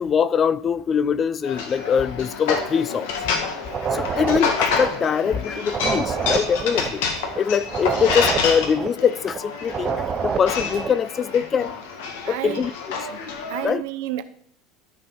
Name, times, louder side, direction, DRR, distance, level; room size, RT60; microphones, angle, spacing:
voice 1, 0.0-3.1 3.9-7.1 7.4-11.7 12.3-12.7 13.6-13.8, left 7 dB, 30° left, 0.3 m, -23 dB
sound 1, 1.4-13.6, left 5 dB, 80° left, 1.7 m, -28 dB
sound 2, 3.6-11.0, right 6 dB, 25° right, 0.6 m, -28 dB
voice 2, 12.2-12.7 13.5-14.2, right 14 dB, 75° right, 0.7 m, -29 dB
13.0 x 5.4 x 4.2 m
supercardioid pair, 130°, 0 cm